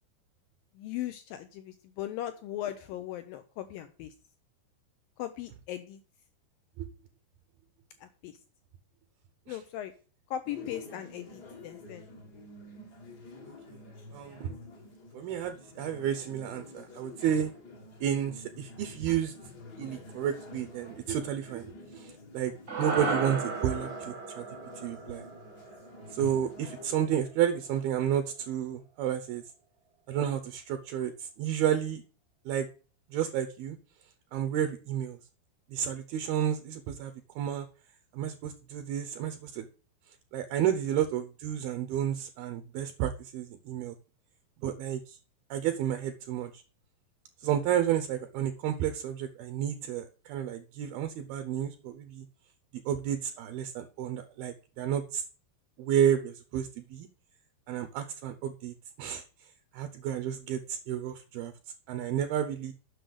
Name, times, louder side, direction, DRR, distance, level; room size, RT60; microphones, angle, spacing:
voice 1, 0.7-4.1 5.2-6.0 8.0-8.4 9.5-9.9 10.3-12.1 40.9-41.0, left 12 dB, 85° left, 9 dB, 2.0 m, -38 dB
sound 1, 10.4-27.1, left 2 dB, 55° left, 1.1 m, -48 dB
voice 2, 14.1-14.5 15.1-17.5 18.0-19.3 19.8-24.5 24.8-25.2 26.1-29.4 30.1-32.0 32.5-32.7 33.1-33.8 34.3-35.2 35.7-37.1 37.4-37.7 38.1-39.7 40.3-43.9 44.6-45.2 45.5-46.6 47.4-52.3 52.9-55.2 55.8-57.1 57.7-59.2 59.7-61.5 61.9-62.7, right 10 dB, 75° right, 9 dB, 2.4 m, -31 dB
sound 2, 22.7-27.1, right 4 dB, 55° right, 1.0 m, -36 dB
7.9 x 6.2 x 6.4 m, 0.37 s
omnidirectional pair, 4.9 m